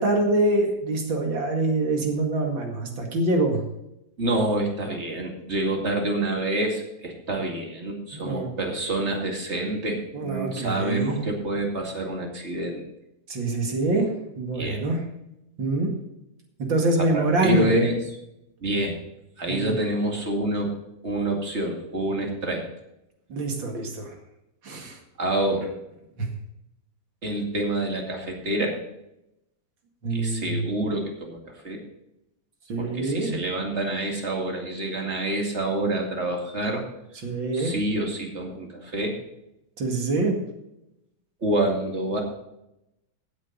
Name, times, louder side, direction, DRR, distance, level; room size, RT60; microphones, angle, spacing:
voice 1, 0.0-3.6 8.1-8.5 10.1-11.2 13.3-14.1 14.4-15.0 15.6-15.9 16.6-17.8 19.5-19.7 23.3-24.1 24.6-25.0 26.2-26.3 30.0-30.6 32.7-33.4 37.2-37.7 39.8-40.4, right 2 dB, 60° right, 2 dB, 2.9 m, -25 dB
voice 2, 4.2-12.8 14.5-14.8 17.0-18.2 18.6-19.0 19.4-20.7 21.0-22.6 25.2-25.7 27.2-28.8 30.1-31.4 31.6-31.8 32.8-36.8 37.5-39.2 41.4-42.2, right 1 dB, 30° right, 1 dB, 2.5 m, -27 dB
15.5 x 8.5 x 4.1 m, 0.86 s
omnidirectional pair, 2.4 m